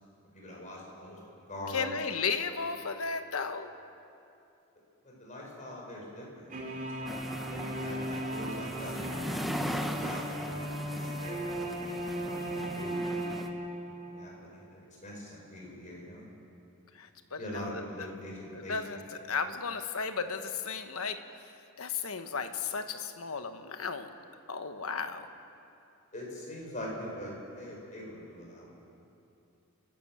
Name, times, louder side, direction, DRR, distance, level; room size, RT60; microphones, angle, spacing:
voice 1, 0.3-1.2 1.5-1.9 5.0-13.3 13.9-16.2 17.4-18.7 26.1-28.7, left 1 dB, 35° left, -2 dB, 5.4 m, -43 dB
voice 2, 1.7-3.7 16.9-17.9 18.5-19.0 19.3-21.2 21.8-24.1 24.5-25.3, left 5 dB, 70° left, 8 dB, 1.2 m, -34 dB
sound 1, 6.5-14.2, right 1 dB, 40° right, 3.1 m, -36 dB
sound 2, 7.1-13.5, equal, ahead, 1.0 m, -39 dB
28.5 x 12.5 x 7.5 m, 2.7 s
head